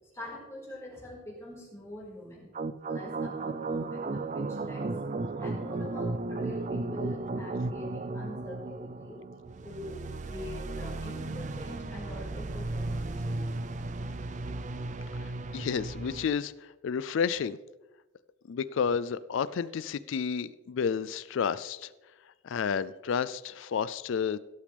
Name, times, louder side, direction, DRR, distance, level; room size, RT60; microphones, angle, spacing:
voice 1, 0.1-2.5 2.8-4.9 5.4-9.2 9.6-13.6, left 1 dB, 15° left, -6 dB, 4.5 m, -44 dB
sound 1, 2.5-16.3, right 2 dB, 35° right, 0.5 m, -35 dB
voice 2, 15.2-17.6 18.5-21.9 22.4-24.4, left 6 dB, 65° left, 16 dB, 0.3 m, -31 dB
17.0 x 8.4 x 3.4 m, 1.1 s
head